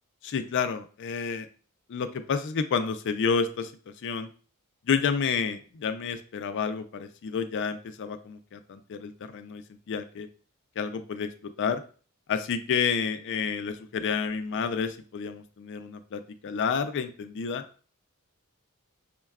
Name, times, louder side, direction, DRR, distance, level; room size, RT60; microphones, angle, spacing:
voice 1, 0.2-1.5 1.9-4.3 4.9-10.3 10.8-11.8 12.3-17.6, left 6 dB, 55° left, 9 dB, 0.4 m, -30 dB
5.3 x 2.2 x 2.3 m, 0.40 s
head